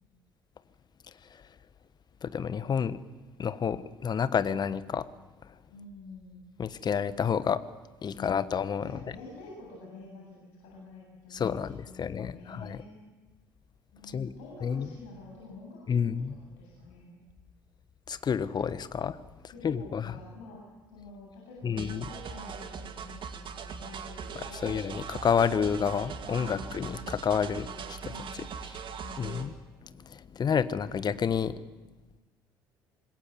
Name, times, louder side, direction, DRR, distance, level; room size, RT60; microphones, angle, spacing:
voice 1, 2.2-3.0 3.4-5.1 6.6-7.6 8.0-9.0 11.3-12.8 14.1-14.3 14.6-14.9 15.9-16.3 18.1-19.2 19.6-20.1 21.6-22.1 24.3-27.7 29.2-29.5 30.0-31.5, left 7 dB, 35° left, 14 dB, 1.3 m, -29 dB
voice 2, 5.7-6.4 8.1-8.5 8.8-13.0 13.9-16.1 16.5-17.2 19.5-20.6 20.9-24.9 26.1-28.6 29.0-29.3, left 2 dB, 65° left, -3 dB, 7.9 m, -48 dB
sound 1, 21.8-29.5, right 6 dB, 45° right, 2.4 m, -40 dB
26.0 x 21.0 x 7.9 m, 1.2 s
figure-of-eight pair, 55°, 12 cm